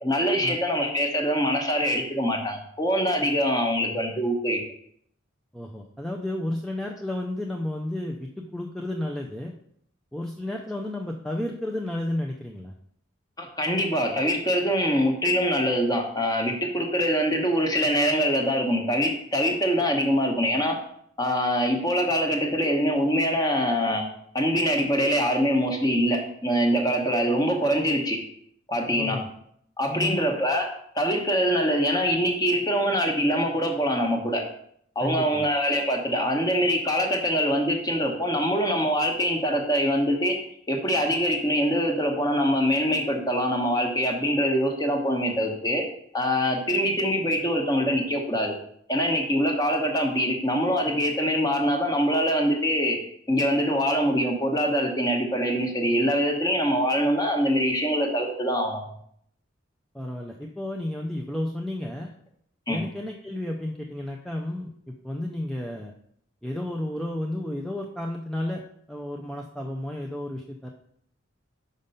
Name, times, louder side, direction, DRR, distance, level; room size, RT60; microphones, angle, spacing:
voice 1, 0.0-4.6 13.4-20.8 21.2-24.0 24.3-28.2 28.7-29.2 29.8-30.7 30.9-34.4 34.9-40.4 40.7-45.8 46.1-48.5 48.9-53.0 53.3-58.8 62.7-62.8, equal, 20° left, 2 dB, 1.1 m, -24 dB
voice 2, 5.5-9.5 10.1-12.7 28.9-29.3 29.9-30.2 35.0-35.5 59.9-62.1 62.7-65.9 66.4-68.6 68.9-70.7, left 1 dB, ahead, 0 dB, 0.5 m, -32 dB
5.3 x 5.2 x 5.5 m, 0.68 s
head